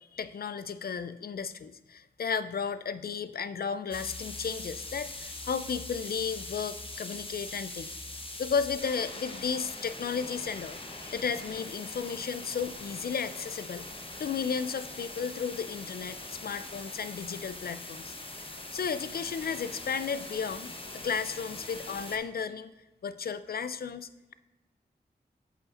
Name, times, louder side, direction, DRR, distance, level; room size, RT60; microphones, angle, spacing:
voice 1, 0.0-7.9 8.4-13.9 14.2-18.1 18.7-22.7 23.0-24.3, left 6 dB, 60° left, 13 dB, 0.4 m, -34 dB
sound 1, 3.9-22.2, left 2 dB, 30° left, 0.9 m, -42 dB
8.1 x 5.2 x 2.5 m, 1.1 s
cardioid pair, 45°, 18 cm